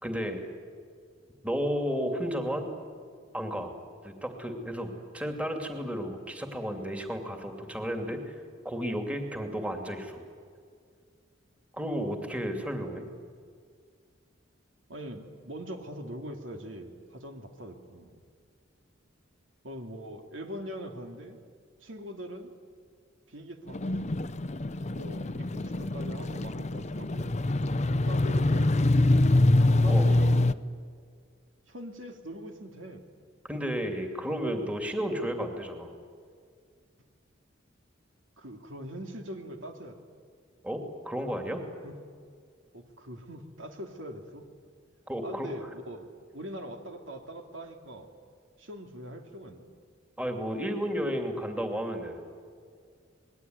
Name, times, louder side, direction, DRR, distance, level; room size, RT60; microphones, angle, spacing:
voice 1, 0.0-0.5 1.4-2.7 3.3-3.7 4.0-8.4 8.6-10.2 11.7-13.1 29.9-30.1 33.4-35.9 40.6-41.6 45.1-45.5 50.2-52.3, equal, 5° right, 4 dB, 2.7 m, -33 dB
voice 2, 14.9-18.2 19.6-21.4 21.8-22.5 23.3-24.1 24.9-27.4 28.0-29.0 29.6-30.4 31.7-33.0 34.3-34.4 34.7-34.9 38.4-40.0 41.8-42.0 42.7-44.5 45.2-48.1 48.6-49.7, equal, 75° right, 4 dB, 2.8 m, -42 dB
sound 1, 23.7-30.5, left 2 dB, 35° left, 0.7 m, -25 dB
27.5 x 21.0 x 9.5 m, 2.1 s
head